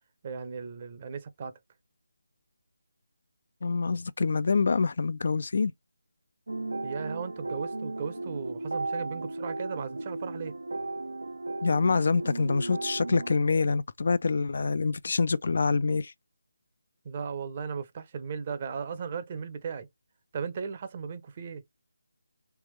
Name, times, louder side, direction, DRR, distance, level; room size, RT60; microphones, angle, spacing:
voice 1, 0.2-1.6 6.8-10.6 17.0-19.9 20.3-21.6, right 6 dB, 30° right, 0.7 m, -36 dB
voice 2, 3.6-5.7 11.6-16.1, left 4 dB, 55° left, 0.4 m, -26 dB
sound 1, 6.5-13.4, right 2 dB, 85° right, 0.7 m, -35 dB
3.4 x 3.0 x 3.1 m
figure-of-eight pair, 165°, 0 cm